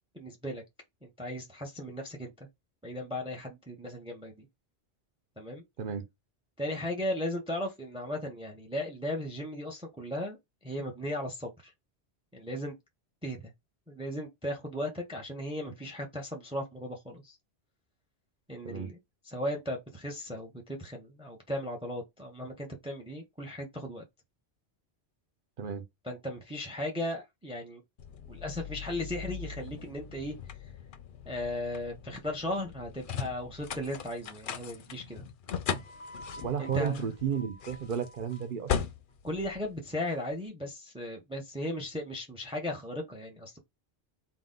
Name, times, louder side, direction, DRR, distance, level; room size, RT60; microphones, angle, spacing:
voice 1, 0.1-0.6 1.0-2.5 2.8-4.5 5.4-5.6 6.6-10.4 10.6-11.7 12.3-12.8 13.2-13.5 13.9-17.4 18.5-19.0 19.2-24.0 26.0-27.8 28.3-30.4 31.3-35.2 36.6-37.1 39.2-43.6, left 1 dB, 5° right, 0.8 m, -36 dB
sound 1, 28.0-40.3, left 7 dB, 60° left, 0.7 m, -39 dB
voice 2, 36.4-38.7, right 7 dB, 55° right, 0.9 m, -33 dB
4.0 x 2.4 x 3.8 m
omnidirectional pair, 1.1 m